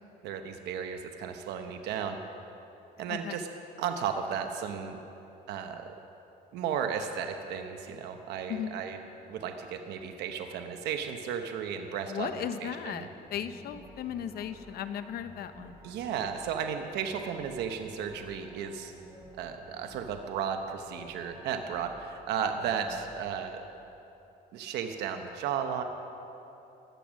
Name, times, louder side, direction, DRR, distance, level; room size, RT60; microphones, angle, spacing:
voice 1, 0.2-2.2 3.0-3.5 3.8-5.0 5.5-5.9 6.5-9.0 9.3-13.1 15.8-18.9 19.4-23.6 24.5-25.8, right 7 dB, 80° right, 5 dB, 1.0 m, -34 dB
voice 2, 3.1-3.4 8.5-8.8 12.1-15.8, left 9 dB, 65° left, 10 dB, 0.8 m, -36 dB
sound 1, 13.2-23.3, right 1 dB, 15° right, 3.3 m, -53 dB
16.0 x 12.0 x 6.3 m, 2.9 s
cardioid pair, 110°, 17 cm